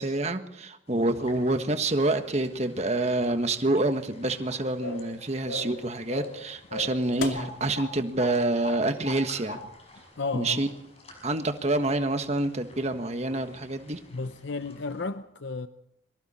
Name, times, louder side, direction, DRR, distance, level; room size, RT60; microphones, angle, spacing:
voice 1, 0.0-9.6 10.3-10.7 11.2-14.0, right 2 dB, 35° right, 1.4 m, -27 dB
sound 1, 0.9-15.1, left 2 dB, 30° left, 5.7 m, -54 dB
sound 2, 4.8-5.1 5.5-5.8 6.1-6.4 6.7-7.9 8.2-8.4 8.6-9.2 9.5-9.7, left 3 dB, 85° left, 2.6 m, -35 dB
voice 2, 10.2-10.7 14.1-15.7, left 3 dB, 65° left, 0.7 m, -33 dB
26.5 x 24.0 x 4.3 m
head